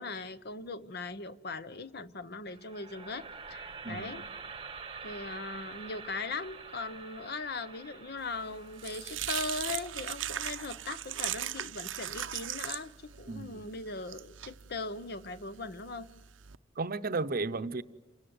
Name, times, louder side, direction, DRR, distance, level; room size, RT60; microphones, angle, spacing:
voice 1, 0.0-4.2 5.0-16.1, left 3 dB, 55° left, 0.9 m, -39 dB
sound 1, 2.5-12.6, right 5 dB, 30° right, 1.0 m, -48 dB
voice 2, 3.8-4.2 13.3-13.6 16.8-17.8, right 3 dB, 50° right, 0.8 m, -34 dB
sound 2, 8.3-16.5, right 12 dB, 80° right, 0.7 m, -39 dB
28.5 x 17.0 x 9.5 m
head